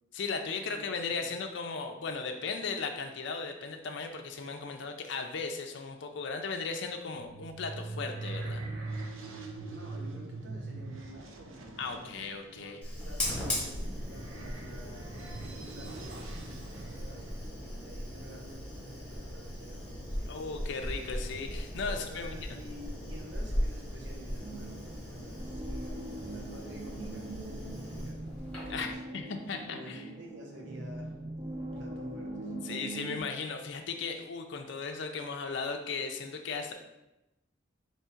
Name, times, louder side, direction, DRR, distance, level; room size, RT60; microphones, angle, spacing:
voice 1, 0.1-8.6 11.8-12.8 20.3-22.3 28.7-30.0 32.6-36.7, left 4 dB, 60° left, 4 dB, 0.5 m, -36 dB
sound 1, 6.9-17.4, right 2 dB, 85° right, 0.6 m, -42 dB
voice 2, 9.6-12.2 12.4-20.3 21.9-29.0 29.7-31.2 31.6-32.5, equal, 65° right, 0 dB, 0.9 m, -50 dB
Fire, 12.8-28.9, equal, 5° left, 1.2 m, -38 dB
sound 2, 24.4-33.2, right 2 dB, 25° right, 0.5 m, -42 dB
3.6 x 3.0 x 4.4 m, 0.93 s
head